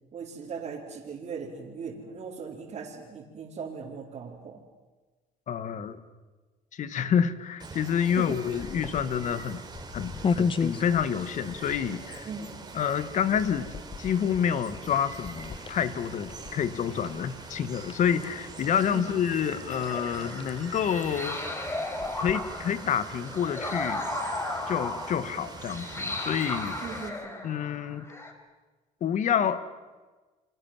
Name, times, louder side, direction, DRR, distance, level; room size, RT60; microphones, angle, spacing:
voice 1, 0.1-4.6 8.2-8.4 12.3-12.5 18.9-19.1 26.8-27.4, right 5 dB, 45° right, -4 dB, 4.4 m, -39 dB
voice 2, 5.5-6.0 6.7-9.6 9.9-12.3 12.7-21.4 22.2-24.0 24.7-26.8 27.4-28.0 29.0-29.6, left 8 dB, 55° left, 12 dB, 1.9 m, -28 dB
Water, 7.6-27.1, right 4 dB, 25° right, 3.7 m, -44 dB
sound 1, 8.4-23.0, left 5 dB, 35° left, 1.1 m, -37 dB
sound 2, 19.7-28.3, left 2 dB, 15° left, 4.1 m, -35 dB
29.5 x 24.5 x 7.6 m, 1.3 s
cardioid pair, 105°, 16 cm